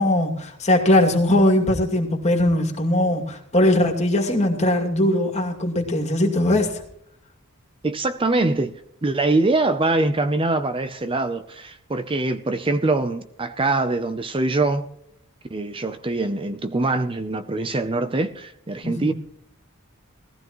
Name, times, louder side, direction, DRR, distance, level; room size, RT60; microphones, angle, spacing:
voice 1, 0.0-6.8 18.8-19.1, left 1 dB, 35° left, 2.5 m, -20 dB
voice 2, 7.8-14.9 15.5-19.1, right 2 dB, 25° right, 0.6 m, -23 dB
19.5 x 15.0 x 3.1 m
head